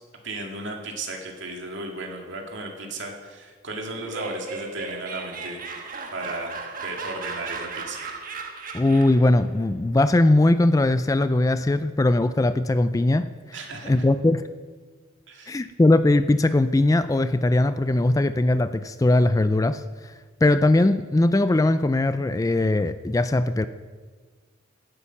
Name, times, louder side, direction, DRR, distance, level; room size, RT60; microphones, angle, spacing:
voice 1, 0.2-5.6 6.1-6.5 6.8-8.0 13.5-14.1 15.3-15.7, right 2 dB, 65° right, 1 dB, 2.2 m, -35 dB
Laughter, 3.9-9.3, right 4 dB, 45° right, 1.4 m, -36 dB
voice 2, 8.7-13.3 13.8-14.4 15.5-19.8 20.4-23.7, left 2 dB, 15° left, 12 dB, 0.3 m, -20 dB
16.0 x 8.5 x 5.9 m, 1.5 s
head